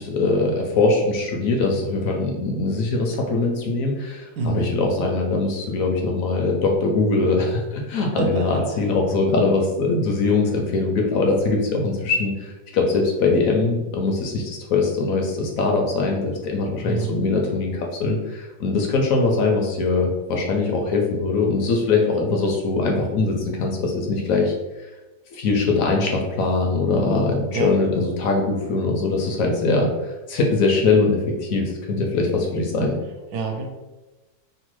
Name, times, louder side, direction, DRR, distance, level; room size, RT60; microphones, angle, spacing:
voice 1, 0.0-24.9 25.3-29.9 30.3-33.0, left 3 dB, 70° left, 1 dB, 0.9 m, -22 dB
voice 2, 4.4-4.7 8.2-8.8 16.8-17.2 27.5-27.7 33.3-33.7, right 4 dB, 75° right, 3 dB, 1.0 m, -26 dB
3.0 x 2.2 x 3.0 m, 1.1 s
omnidirectional pair, 1.6 m